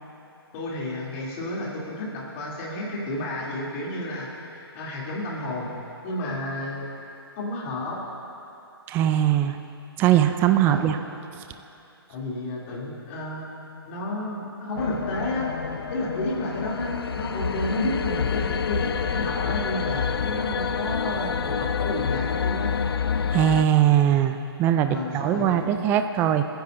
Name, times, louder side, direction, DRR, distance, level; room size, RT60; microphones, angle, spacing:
voice 1, 0.5-5.7 6.0-6.9 7.4-8.0 10.6-11.0 12.1-13.5 13.9-15.5 15.9-22.7 24.9-25.7, left 1 dB, 30° left, -5 dB, 3.2 m, -31 dB
voice 2, 8.9-9.6 10.0-11.0 23.3-26.4, right 11 dB, 15° right, 8 dB, 0.4 m, -21 dB
sound 1, 14.8-23.6, left 6 dB, 65° left, 0.5 m, -28 dB
27.0 x 10.0 x 2.7 m, 2.8 s
figure-of-eight pair, 135°, 13 cm